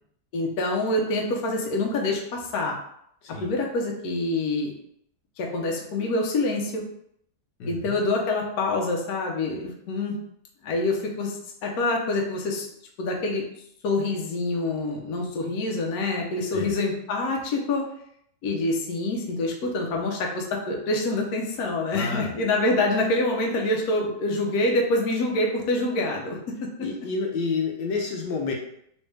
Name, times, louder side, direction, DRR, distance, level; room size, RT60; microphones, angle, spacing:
voice 1, 0.3-2.8 3.4-4.7 5.4-6.8 7.6-10.2 10.6-12.7 13.0-13.4 13.8-17.9 18.4-26.7, left 2 dB, 65° left, 0 dB, 1.1 m, -26 dB
voice 2, 7.6-8.0 16.5-16.7 21.9-22.3 26.8-28.5, left 4 dB, 80° left, 1 dB, 1.4 m, -29 dB
3.2 x 3.1 x 3.2 m, 0.71 s
omnidirectional pair, 1.8 m